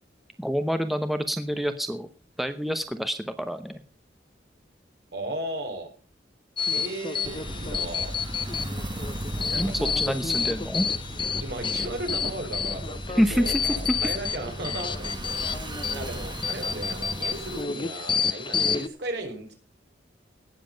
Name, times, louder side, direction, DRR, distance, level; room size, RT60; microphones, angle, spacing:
voice 1, 0.4-2.1 2.4-3.8 9.6-10.9 13.1-13.6, equal, ahead, 8 dB, 0.8 m, -27 dB
voice 2, 5.1-5.9 6.7-8.2 9.4-10.2 11.4-15.1 15.9-19.5, right 1 dB, 70° right, 3 dB, 4.2 m, -36 dB
sound 1, 6.6-18.9, left 6 dB, 30° left, 0.8 m, -30 dB
sound 2, 7.2-17.6, right 1 dB, 25° right, 1.2 m, -36 dB
18.5 x 7.6 x 5.2 m, 0.36 s
head